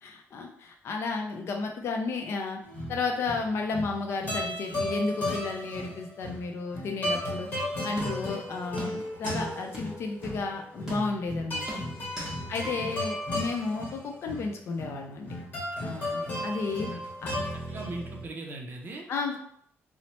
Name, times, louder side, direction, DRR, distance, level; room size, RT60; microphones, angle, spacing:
voice 1, 0.0-2.6 2.9-7.5 7.8-11.6 12.5-15.3 15.8-16.9 17.2-17.3 19.1-19.4, left 4 dB, 55° left, 3 dB, 0.5 m, -32 dB
sound 1, 2.6-18.2, left 1 dB, 35° left, 1.2 m, -35 dB
sound 2, 8.0-8.4 8.8-9.5 9.7-9.8 10.2-10.4 10.9-11.3 11.7-12.4 12.6-12.7, equal, 10° right, 0.8 m, -38 dB
voice 2, 12.4-12.8 16.3-17.0 17.5-19.1, right 2 dB, 40° right, 1 dB, 0.5 m, -41 dB
2.9 x 2.0 x 3.0 m, 0.66 s
cardioid pair, 170°, 5 cm